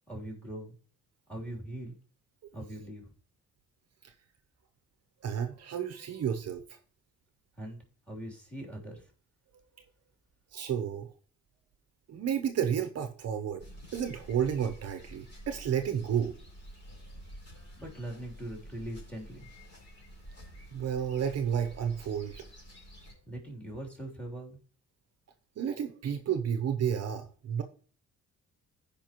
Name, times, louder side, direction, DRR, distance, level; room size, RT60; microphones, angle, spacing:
voice 1, 0.1-0.7 1.3-1.9 2.5-3.1 7.6-9.0 17.8-19.5 23.2-24.6, right 1 dB, 5° left, 0 dB, 3.2 m, -41 dB
voice 2, 5.2-6.8 10.5-11.1 12.1-13.6 13.9-16.4 20.7-22.4 25.6-27.6, right 8 dB, 55° right, 8 dB, 0.8 m, -31 dB
sound 1, 13.6-23.1, equal, 35° left, 4.1 m, -50 dB
15.0 x 5.1 x 3.0 m, 0.42 s
cardioid pair, 90°, 30 cm